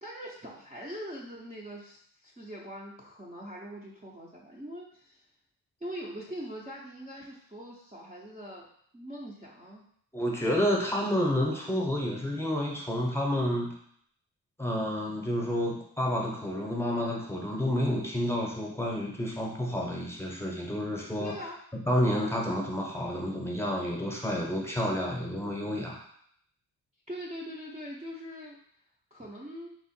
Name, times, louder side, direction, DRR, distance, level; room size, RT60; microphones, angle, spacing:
voice 1, 0.0-5.2 5.8-8.7 8.9-9.8 21.2-21.6 27.1-28.6 29.1-29.7, equal, 15° right, -5 dB, 0.7 m, -42 dB
voice 2, 10.1-13.7 14.6-21.3 21.8-26.0, equal, 5° left, -2 dB, 0.9 m, -30 dB
4.6 x 2.4 x 4.3 m, 0.66 s
cardioid pair, 115°, 38 cm